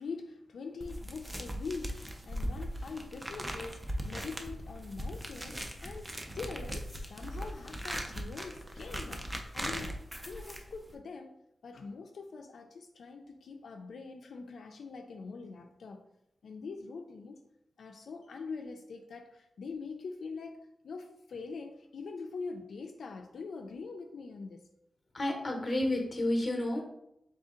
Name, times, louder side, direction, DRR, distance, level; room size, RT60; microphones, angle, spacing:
voice 1, 0.0-11.3 11.6-16.1 16.4-17.4 17.8-20.6 20.8-24.7, left 4 dB, 75° left, 3 dB, 0.3 m, -43 dB
sound 1, 0.8-11.0, equal, 15° right, 0.4 m, -39 dB
voice 2, 25.1-26.8, left 1 dB, 25° left, 2 dB, 0.8 m, -30 dB
3.7 x 2.7 x 3.6 m, 0.80 s
wide cardioid pair, 150°, 0 cm